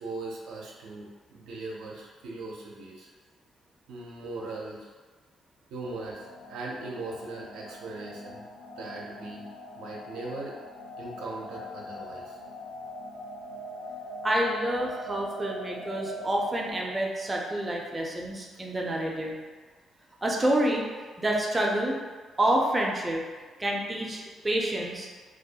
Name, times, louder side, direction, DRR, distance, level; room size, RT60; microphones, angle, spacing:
voice 1, 0.0-3.1 3.9-4.8 5.7-8.4 8.8-9.4 9.8-10.6 11.0-12.4, right 2 dB, 90° right, -3 dB, 0.4 m, -39 dB
sound 1, 5.8-16.7, equal, 90° left, 0.3 m, -42 dB
voice 2, 14.2-19.4 20.2-20.9 21.2-22.0 22.4-23.2 23.6-25.1, right 1 dB, 20° right, -1 dB, 0.4 m, -28 dB
2.3 x 2.0 x 2.7 m, 1.4 s
cardioid pair, 90°, 0 cm